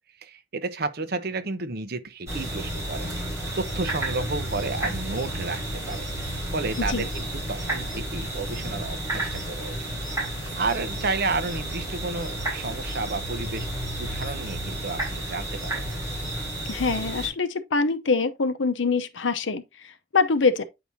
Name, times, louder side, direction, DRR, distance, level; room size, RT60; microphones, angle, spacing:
voice 1, 0.2-6.1 6.5-9.9 10.6-13.7 14.0-15.8, right 3 dB, 55° right, 0.8 m, -31 dB
sound 1, 2.3-17.3, right 1 dB, 15° right, 3.9 m, -31 dB
voice 2, 16.7-20.6, left 4 dB, 75° left, 0.8 m, -24 dB
8.8 x 4.8 x 2.7 m
head